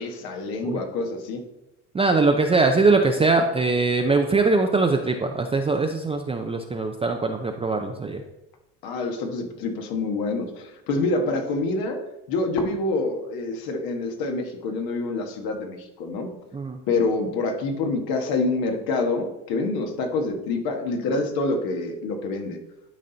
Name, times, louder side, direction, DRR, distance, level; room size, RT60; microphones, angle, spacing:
voice 1, 0.0-1.4 8.8-12.0 12.3-16.3 16.9-22.6, left 3 dB, 70° left, 3 dB, 1.5 m, -26 dB
voice 2, 1.9-8.2 16.5-16.8, right 3 dB, 15° right, 3 dB, 0.5 m, -22 dB
12.0 x 4.2 x 3.9 m, 0.92 s
supercardioid pair, 110°, 38 cm